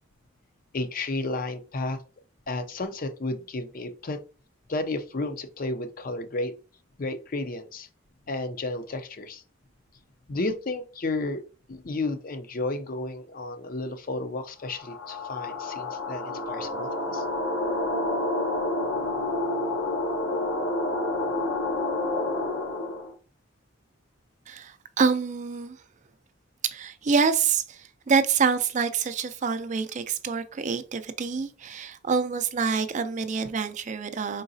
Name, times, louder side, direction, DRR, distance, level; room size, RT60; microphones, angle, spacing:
voice 1, 0.7-2.0 2.5-4.2 4.7-6.6 7.0-7.9 8.3-9.4 10.3-11.4 11.7-17.2, left 2 dB, 45° left, 0.5 m, -32 dB
sound 1, 14.7-23.1, left 2 dB, 80° left, 1.0 m, -29 dB
voice 2, 24.5-25.8 26.6-34.4, right 5 dB, 40° right, 0.4 m, -26 dB
4.8 x 3.8 x 2.6 m
head